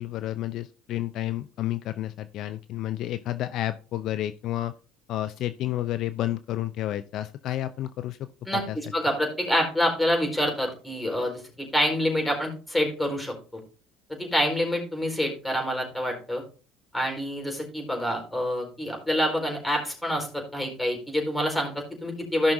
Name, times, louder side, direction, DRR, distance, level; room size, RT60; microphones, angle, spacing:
voice 1, 0.0-4.7 5.1-8.8, left 13 dB, 60° left, 12 dB, 0.5 m, -31 dB
voice 2, 8.5-13.3 14.2-16.4 16.9-22.5, equal, 10° left, 2 dB, 4.4 m, -27 dB
16.0 x 6.0 x 2.7 m, 0.36 s
supercardioid pair, 80°, 0 cm